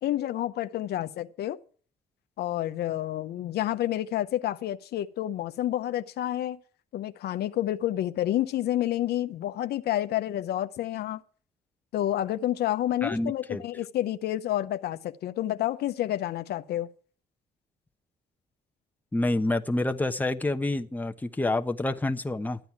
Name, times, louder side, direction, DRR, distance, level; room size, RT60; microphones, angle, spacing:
voice 1, 0.0-1.6 2.4-6.6 6.9-11.2 11.9-16.9, left 13 dB, 75° left, 0.8 m, -29 dB
voice 2, 13.0-13.6 19.1-22.6, left 2 dB, 10° left, 1.0 m, -28 dB
13.5 x 9.2 x 5.9 m
cardioid pair, 85°, 17 cm